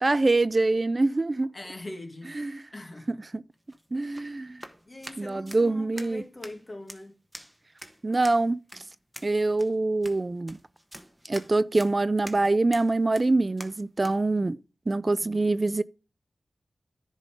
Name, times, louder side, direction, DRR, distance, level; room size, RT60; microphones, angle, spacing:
voice 1, 0.0-1.5 2.4-2.6 3.3-3.4 3.9-4.6 5.2-6.2 8.0-8.8 9.2-10.6 11.2-14.6 14.9-15.8, right 2 dB, 40° right, 0.3 m, -25 dB
voice 2, 1.5-2.4 2.7-3.2 4.0-4.2 4.9-7.2 15.1-15.5, left 1 dB, 35° left, 1.7 m, -42 dB
sound 1, 3.5-14.2, equal, 5° right, 1.2 m, -47 dB
10.5 x 3.8 x 4.9 m
cardioid pair, 50°, 0 cm